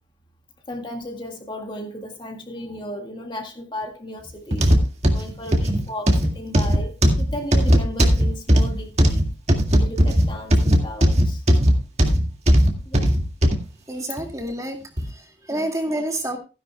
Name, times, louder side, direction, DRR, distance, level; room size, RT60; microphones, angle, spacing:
voice 1, 0.7-4.6 5.1-9.2 9.8-11.4 12.9-13.0 15.5-15.7, left 1 dB, 25° left, 1.8 m, -35 dB
sound 1, 4.5-13.6 14.2-14.3 15.0-15.1, equal, 35° right, 2.0 m, -17 dB
voice 2, 13.9-14.8 15.0-16.4, right 1 dB, 20° right, 2.1 m, -28 dB
16.0 x 10.5 x 2.2 m
head